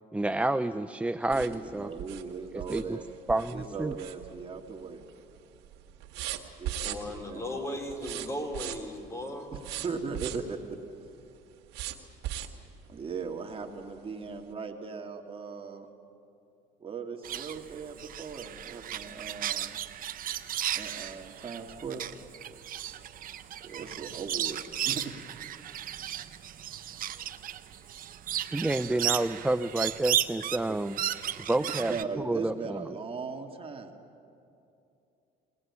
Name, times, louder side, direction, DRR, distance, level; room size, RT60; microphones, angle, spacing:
voice 1, 0.1-1.9 2.5-3.0 3.3-4.0 28.5-31.0 31.4-32.8, right 2 dB, 5° right, 11 dB, 0.5 m, -29 dB
voice 2, 1.3-3.0 3.5-5.0 6.6-7.0 7.3-7.4 9.5-10.8 12.9-15.9 16.8-19.8 20.7-22.0 23.6-25.2 30.7-30.8 31.9-34.0, right 5 dB, 35° right, 3 dB, 1.9 m, -38 dB
sound 1, 1.3-4.7 5.0-5.4 5.6-7.3 7.9-9.0 9.5-10.5 11.7-12.7 13.2-13.3 13.7-13.8, right 12 dB, 85° right, 1.7 m, -38 dB
voice 3, 6.8-9.5, left 1 dB, 15° left, 2 dB, 3.6 m, -36 dB
sound 2, 17.2-32.0, right 11 dB, 55° right, 0.9 m, -35 dB
22.5 x 18.0 x 9.6 m, 2.7 s
cardioid pair, 110°, 17 cm